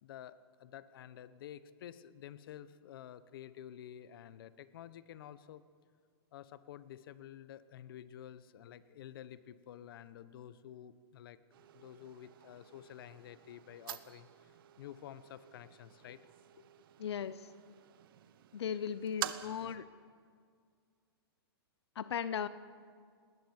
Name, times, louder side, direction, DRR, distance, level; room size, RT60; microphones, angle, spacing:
voice 1, 0.0-5.6 6.3-11.4 11.7-16.3 16.5-16.6 17.2-17.3, left 11 dB, 60° left, 15 dB, 0.9 m, -51 dB
sound 1, 11.5-19.8, right 12 dB, 60° right, 1.0 m, -48 dB
voice 2, 17.0-17.5 18.5-19.9 22.0-22.5, left 8 dB, 90° left, 15 dB, 0.7 m, -37 dB
20.5 x 19.0 x 7.2 m, 2.1 s
hypercardioid pair, 155°, 13 cm